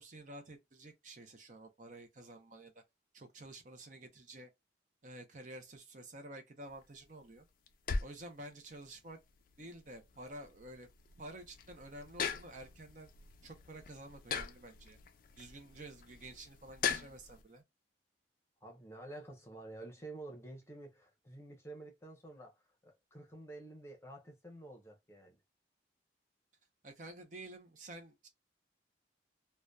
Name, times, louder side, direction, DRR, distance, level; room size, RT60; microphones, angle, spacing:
voice 1, 0.0-2.7 3.1-4.5 5.0-7.4 8.0-9.2 9.6-10.9 11.2-13.1 13.4-15.0 15.4-17.6 26.8-28.3, right 1 dB, 45° right, 0.6 m, -50 dB
sound 1, 6.7-17.4, left 6 dB, 50° left, 0.3 m, -42 dB
voice 2, 18.6-25.4, right 2 dB, 15° left, 0.7 m, -50 dB
2.7 x 2.2 x 2.2 m
head